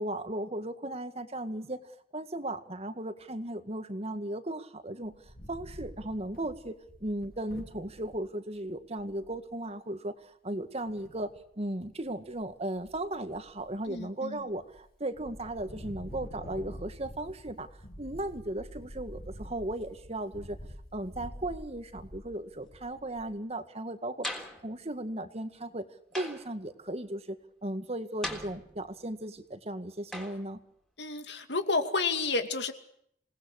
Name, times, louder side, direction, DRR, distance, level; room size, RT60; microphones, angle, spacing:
voice 1, 0.0-1.8 2.1-5.1 5.5-6.8 7.0-11.3 11.6-17.7 18.0-20.6 20.9-25.9 26.1-30.6, right 1 dB, 35° right, 9 dB, 1.9 m, -36 dB
Wind, 5.0-8.2 8.7-8.8 9.0-9.4 10.8-11.4 11.9-12.4 12.7-13.9 14.4-14.8 15.1-23.4, equal, 55° left, 6.1 m, -47 dB
voice 2, 13.9-14.4 31.0-32.7, left 3 dB, 75° left, 8 dB, 2.6 m, -30 dB
sound 1, 24.2-24.7 26.1-26.6 28.2-29.0 30.1-30.5, left 1 dB, 5° left, 3.7 m, -39 dB
27.5 x 19.0 x 6.6 m, 0.68 s
head